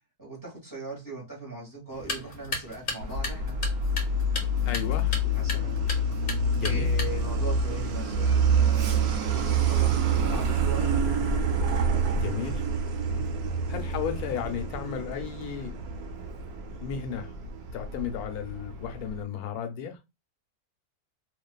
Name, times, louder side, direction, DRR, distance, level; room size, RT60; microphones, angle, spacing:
voice 1, 0.2-3.6 5.3-5.8 6.6-11.1 13.1-13.4, right 2 dB, 15° right, 0.9 m, -40 dB
sound 1, 1.9-7.4, left 2 dB, 45° left, 0.8 m, -37 dB
Truck, 3.0-19.2, right 2 dB, 85° right, 1.1 m, -27 dB
voice 2, 4.6-5.2 6.6-6.9 12.1-12.6 13.7-15.8 16.8-17.3 17.7-20.0, left 8 dB, 85° left, 1.1 m, -34 dB
2.5 x 2.4 x 2.2 m
omnidirectional pair, 1.6 m